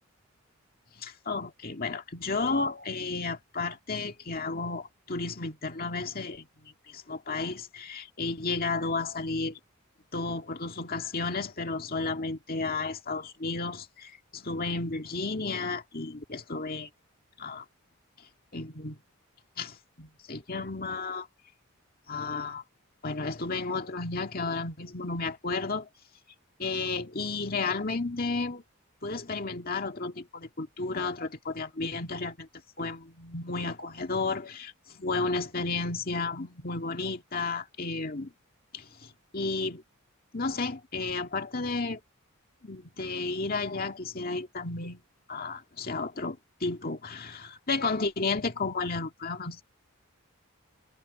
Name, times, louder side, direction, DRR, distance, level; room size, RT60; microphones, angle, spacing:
voice 1, 1.0-9.6 10.1-16.9 17.4-17.6 18.5-19.0 19.6-21.3 22.1-22.6 23.0-25.9 26.6-28.6 29.0-32.5 32.8-38.3 38.7-39.8 40.3-42.0 42.6-45.0 45.3-49.6, left 3 dB, 40° left, 2.1 m, -33 dB
head